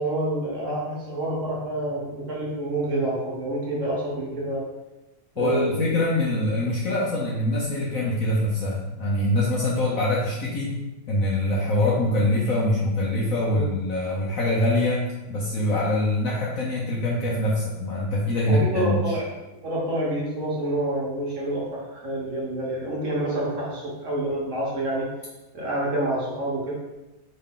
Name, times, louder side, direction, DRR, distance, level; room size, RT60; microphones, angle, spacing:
voice 1, 0.0-4.6 5.4-5.9 13.5-13.7 18.5-19.3 19.6-25.1 25.5-26.7, right 1 dB, 50° right, -5 dB, 1.1 m, -27 dB
voice 2, 5.4-10.7 11.1-19.2, left 1 dB, 65° left, -4 dB, 0.9 m, -24 dB
4.4 x 3.2 x 3.6 m, 1.0 s
omnidirectional pair, 2.0 m